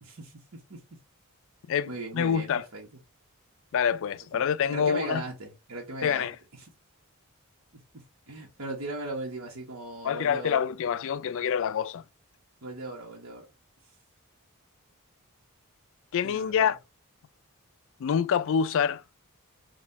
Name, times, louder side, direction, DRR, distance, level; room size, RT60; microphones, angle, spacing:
voice 1, 0.0-1.0 1.9-2.9 4.3-6.3 7.7-10.6 12.6-13.5 16.2-16.7, right 2 dB, 65° right, 1.2 m, -38 dB
voice 2, 1.7-2.6 3.7-5.2 6.0-6.4 10.0-12.0 16.1-16.8 18.0-19.0, left 7 dB, 60° left, 0.3 m, -26 dB
4.1 x 2.4 x 4.1 m
head